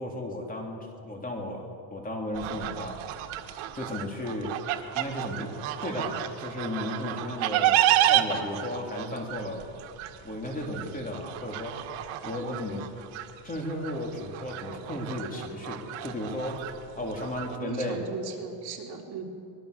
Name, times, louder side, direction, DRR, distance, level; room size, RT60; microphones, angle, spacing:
voice 1, 0.0-3.0 3.7-4.5 4.9-5.5 5.8-9.7 10.2-11.8 12.2-12.9 13.4-16.7 16.9-18.1, left 1 dB, 15° left, 1 dB, 3.4 m, -34 dB
sound 1, 2.3-17.6, right 13 dB, 85° right, 1.7 m, -31 dB
voice 2, 17.6-19.2, right 6 dB, 55° right, 0 dB, 3.7 m, -38 dB
24.5 x 21.0 x 6.8 m, 2.6 s
cardioid pair, 145°, 47 cm